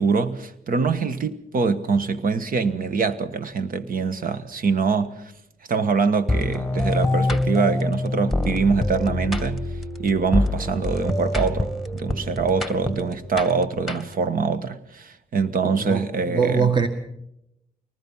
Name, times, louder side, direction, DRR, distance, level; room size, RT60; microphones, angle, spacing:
voice 1, 0.0-5.2 5.7-9.7 10.0-16.7, right 5 dB, 65° right, 1.5 m, -24 dB
sound 1, 6.3-14.4, left 2 dB, ahead, 2.2 m, -26 dB
voice 2, 15.6-16.9, right 5 dB, 30° right, 1.8 m, -23 dB
24.0 x 19.5 x 5.7 m
cardioid pair, 75°, 16 cm